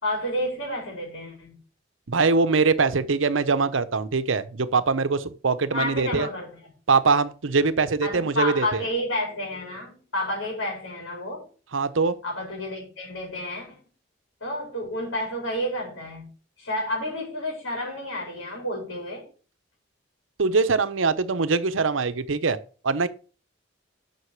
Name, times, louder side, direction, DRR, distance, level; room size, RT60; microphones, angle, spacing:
voice 1, 0.0-1.6 5.7-6.7 8.0-11.5 12.2-13.8 14.4-16.3 16.6-19.3, left 1 dB, 85° left, 4.7 m, -30 dB
voice 2, 2.1-6.3 6.9-8.8 11.7-12.2 20.4-22.6 22.8-23.1, right 4 dB, 85° right, 0.8 m, -22 dB
8.2 x 6.2 x 5.9 m
head